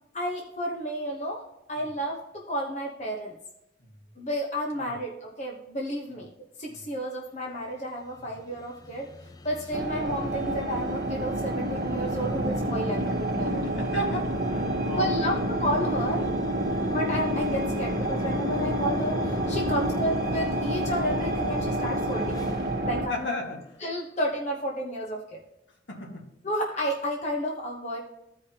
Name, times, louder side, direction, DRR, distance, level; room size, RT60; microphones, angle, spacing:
voice 1, 0.1-1.4 1.7-3.4 4.2-6.3 6.6-9.1 9.4-13.7 15.0-16.3 16.9-22.6 22.8-23.3 23.8-25.4 26.4-28.0, equal, 35° left, -1 dB, 1.0 m, -31 dB
sound 1, 7.7-23.8, left 2 dB, 20° left, 0.3 m, -41 dB
sound 2, 9.7-23.1, right 1 dB, 60° right, 1.1 m, -28 dB
voice 2, 13.6-15.5 16.6-16.8 23.1-23.6 25.9-26.3, equal, 75° left, 0 dB, 1.8 m, -35 dB
14.5 x 5.0 x 2.9 m, 0.88 s
head